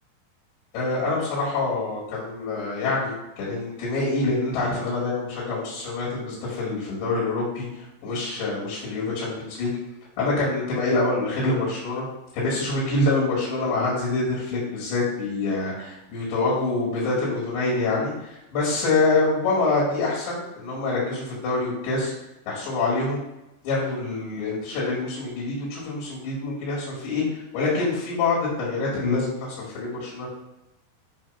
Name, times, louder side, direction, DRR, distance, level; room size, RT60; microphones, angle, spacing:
voice 1, 0.7-9.7 10.2-12.1 12.3-22.1 22.5-23.2 23.6-30.3, left 3 dB, 85° left, -7 dB, 4.4 m, -26 dB
9.2 x 3.2 x 5.7 m, 0.93 s
omnidirectional pair, 4.9 m